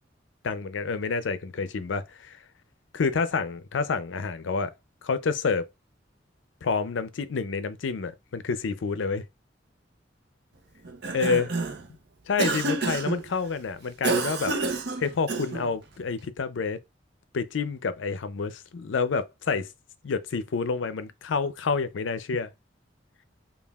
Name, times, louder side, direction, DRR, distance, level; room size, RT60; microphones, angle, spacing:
voice 1, 0.4-2.4 2.9-4.7 5.0-5.7 6.6-9.2 11.1-11.5 12.3-14.5 15.0-16.8 17.3-19.7 20.0-22.5, left 4 dB, 80° left, 0.5 m, -28 dB
Cough, 10.8-11.9 12.4-13.2 14.0-15.7, right 3 dB, 60° right, 0.7 m, -28 dB
5.3 x 2.4 x 2.3 m
head